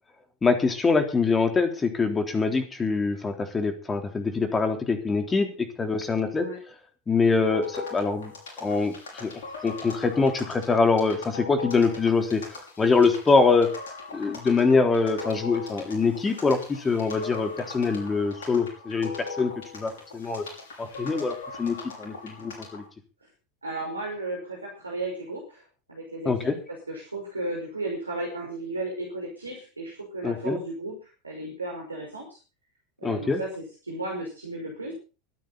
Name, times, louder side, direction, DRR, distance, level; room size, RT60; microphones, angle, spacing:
voice 1, 0.4-6.5 7.1-8.3 8.6-9.3 9.6-12.4 12.8-13.7 14.1-20.5 20.8-22.8 26.3-26.6 30.2-30.6 33.0-33.4, left 4 dB, 20° left, 6 dB, 3.6 m, -24 dB
sound 1, 7.5-22.9, left 3 dB, 70° left, 6.2 m, -40 dB
voice 2, 23.6-32.4 33.0-34.9, right 2 dB, 85° right, -1 dB, 5.6 m, -35 dB
24.5 x 9.5 x 4.1 m, 0.34 s
figure-of-eight pair, 80°, 0 cm